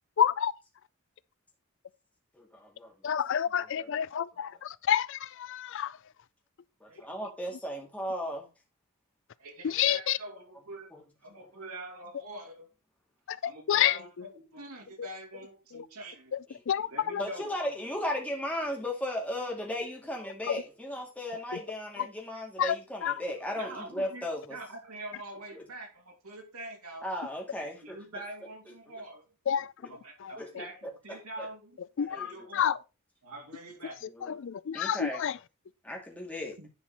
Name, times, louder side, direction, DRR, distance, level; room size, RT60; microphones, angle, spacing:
voice 1, 0.2-0.5 3.0-6.0 9.6-10.2 13.3-14.3 15.0-15.1 15.7-15.9 16.3-17.2 20.5-20.6 22.0-22.1 22.6-22.8 23.0-23.1 29.5-29.7 30.2-30.6 32.0-32.8 34.2-35.4, left 9 dB, 55° left, 0.4 m, -29 dB
voice 2, 2.3-3.1 3.8-4.1 6.8-8.5 10.9-11.0 16.5-16.6 17.2-24.6 25.5-25.6 27.0-28.2 28.9-29.0 30.4-31.5 32.0-32.5 34.0-34.4 34.7-35.2 35.8-36.6, left 1 dB, 5° left, 2.2 m, -36 dB
voice 3, 9.4-10.9 11.2-12.7 13.4-16.3 16.9-17.5 23.5-27.0 27.6-29.2 29.9-31.8 32.1-32.7 33.2-34.1 36.6-36.7, right 1 dB, 80° right, 3.0 m, -45 dB
10.5 x 4.6 x 4.0 m
head